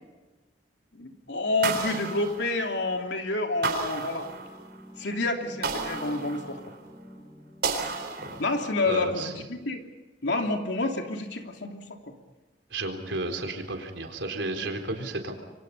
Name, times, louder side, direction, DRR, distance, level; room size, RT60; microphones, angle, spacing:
voice 1, 0.9-4.3 5.0-6.6 8.4-9.8 10.2-12.1, left 2 dB, 70° left, 3 dB, 3.0 m, -29 dB
sound 1, 1.6-3.0 3.6-4.8 5.6-6.9 7.6-8.8, right 4 dB, 60° right, 4.0 m, -32 dB
sound 2, 4.1-9.7, equal, 5° left, 7.9 m, -48 dB
voice 2, 8.9-9.3 12.7-15.3, right 2 dB, 85° right, 4 dB, 4.1 m, -32 dB
27.5 x 24.0 x 5.6 m, 1.2 s
head